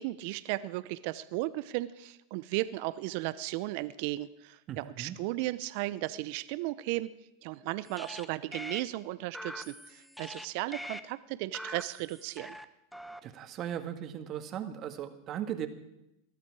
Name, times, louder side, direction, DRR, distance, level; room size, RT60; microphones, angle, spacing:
voice 1, 0.0-7.1 7.4-12.6, right 17 dB, 60° right, 16 dB, 0.6 m, -35 dB
voice 2, 4.7-5.2 13.2-15.7, right 10 dB, 40° right, 8 dB, 1.7 m, -37 dB
sound 1, 7.9-8.3 8.5-8.8 9.3-10.5 10.7-11.0 11.5-12.7 12.9-13.2, equal, ahead, 0.9 m, -43 dB
19.5 x 13.0 x 4.8 m, 0.87 s
hypercardioid pair, 110°, 0 cm